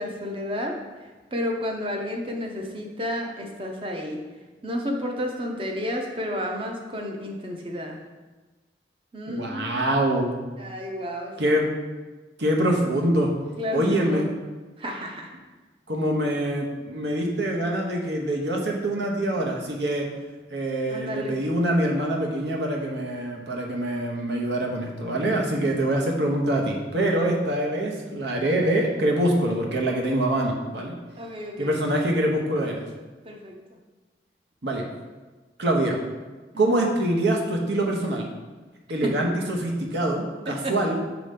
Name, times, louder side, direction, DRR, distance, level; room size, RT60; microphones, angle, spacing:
voice 1, 0.0-4.2 4.6-8.0 9.1-9.8 10.6-11.5 13.6-14.3 14.8-15.3 20.9-21.4 31.2-31.8 33.2-33.6 36.5-36.6 39.0-39.1 40.4-40.8, left 1 dB, 30° right, 2 dB, 0.7 m, -31 dB
voice 2, 9.3-10.4 11.4-11.7 12.4-13.3 13.7-14.2 15.9-20.1 20.5-30.9 31.6-32.8 34.6-34.8 35.6-36.0 36.6-38.3 38.9-41.0, right 1 dB, 75° right, 0 dB, 1.0 m, -24 dB
6.5 x 3.0 x 5.1 m, 1.2 s
head